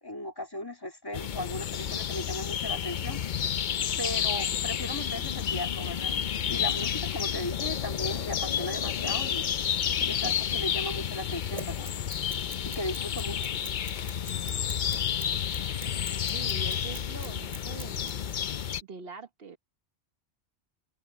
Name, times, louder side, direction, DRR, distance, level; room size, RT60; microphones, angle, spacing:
voice 1, 0.0-3.2 4.0-6.2 6.5-9.5 10.1-11.9 12.6-13.5, left 1 dB, 20° left, 2.3 m, -37 dB
sound 1, 1.1-18.8, left 8 dB, 55° left, 0.7 m, -30 dB
sound 2, 9.9-18.1, right 6 dB, 40° right, 1.3 m, -51 dB
Bicycle / Mechanisms, 11.6-18.1, right 1 dB, 10° right, 4.0 m, -44 dB
voice 2, 16.3-18.3 18.8-19.6, right 5 dB, 60° right, 1.3 m, -44 dB
open air
omnidirectional pair, 1.1 m